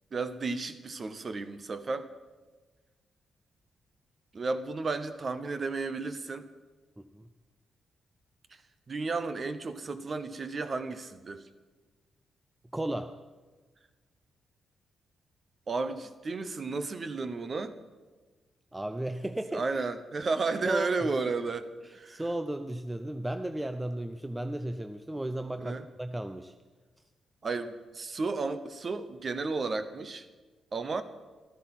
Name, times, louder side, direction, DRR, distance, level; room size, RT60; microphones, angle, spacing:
voice 1, 0.1-2.1 4.3-6.5 8.9-11.4 15.7-17.7 19.5-22.2 25.6-25.8 27.4-30.2 30.7-31.0, right 3 dB, 30° right, 12 dB, 0.8 m, -33 dB
voice 2, 12.7-13.1 18.7-19.6 20.7-21.1 21.8-26.5, right 1 dB, 10° right, 8 dB, 0.4 m, -34 dB
14.0 x 13.5 x 5.9 m, 1.3 s
wide cardioid pair, 175°, 0 cm